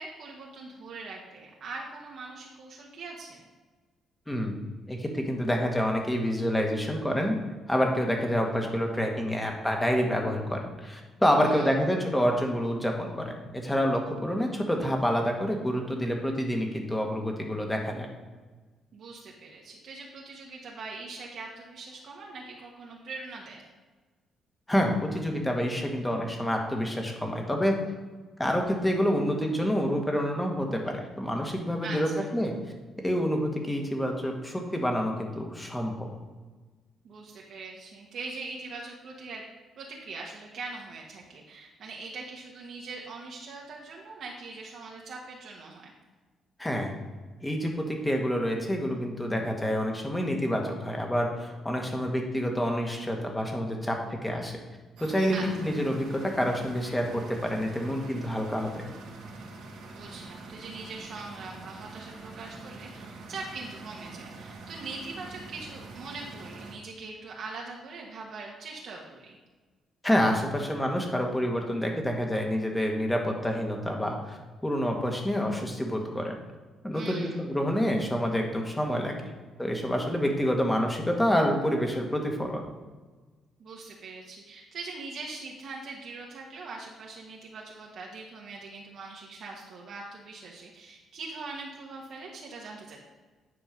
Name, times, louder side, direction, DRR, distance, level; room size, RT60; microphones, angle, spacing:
voice 1, 0.0-3.5 11.5-11.8 18.9-23.6 31.8-32.3 37.0-39.4 39.8-45.9 55.3-55.4 59.9-69.4 76.9-77.4 83.6-93.0, right 3 dB, 65° right, -2 dB, 1.4 m, -42 dB
voice 2, 4.3-4.6 4.9-7.4 7.7-18.1 24.7-27.8 28.4-32.5 33.0-36.1 46.6-46.9 47.4-54.5 55.0-58.8 70.0-74.4 74.6-76.4 76.8-79.3 79.6-82.6, equal, 10° left, 2 dB, 1.8 m, -28 dB
sound 1, 55.0-66.7, right 3 dB, 80° right, 1.8 m, -45 dB
9.9 x 4.6 x 5.2 m, 1.3 s
cardioid pair, 90°, 0 cm